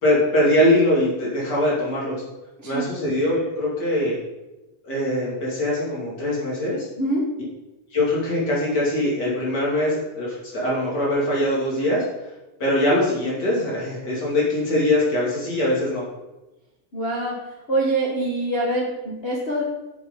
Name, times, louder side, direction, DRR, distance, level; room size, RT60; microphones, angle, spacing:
voice 1, 0.0-2.2 2.6-4.1 4.8-6.9 7.9-12.0 12.6-16.0, left 1 dB, 35° left, -5 dB, 2.5 m, -22 dB
voice 2, 16.9-17.3 17.7-19.6, right 2 dB, 75° left, -5 dB, 0.5 m, -24 dB
6.5 x 5.8 x 5.1 m, 1.0 s
omnidirectional pair, 3.4 m